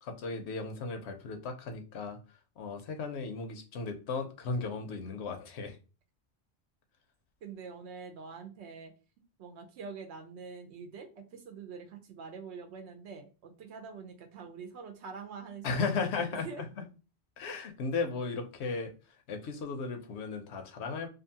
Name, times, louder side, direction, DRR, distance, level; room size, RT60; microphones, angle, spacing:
voice 1, 0.0-2.2 2.6-5.8 15.6-16.7 17.4-18.9 19.3-21.1, left 4 dB, 80° left, 5 dB, 0.9 m, -35 dB
voice 2, 7.4-8.9 9.4-16.6, right 5 dB, 85° right, 4 dB, 0.9 m, -45 dB
2.6 x 2.5 x 2.7 m, 0.33 s
omnidirectional pair, 1.1 m